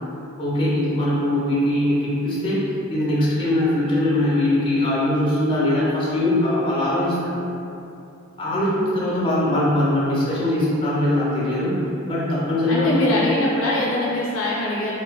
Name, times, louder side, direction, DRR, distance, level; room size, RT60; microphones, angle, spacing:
voice 1, 0.4-7.3 8.4-11.7 12.1-13.0, left 1 dB, 25° left, -8 dB, 0.6 m, -21 dB
voice 2, 12.7-14.9, left 1 dB, 70° left, -6 dB, 0.5 m, -22 dB
2.4 x 2.2 x 3.0 m, 2.7 s
head